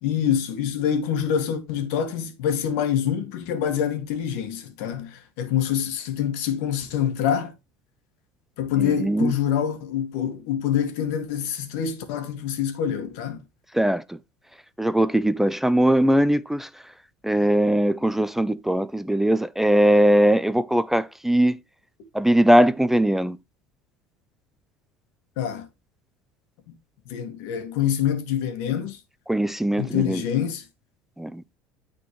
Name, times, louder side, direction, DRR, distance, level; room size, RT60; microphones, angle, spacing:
voice 1, 0.0-7.5 8.6-13.4 25.4-25.7 27.1-29.0 29.8-30.6, left 9 dB, 85° left, 1.9 m, -26 dB
voice 2, 8.8-9.3 13.7-14.2 14.8-16.7 17.2-21.6 22.1-23.4 29.3-30.2 31.2-31.4, right 1 dB, 5° right, 0.4 m, -20 dB
13.0 x 4.4 x 3.1 m
cardioid pair, 130°, 8 cm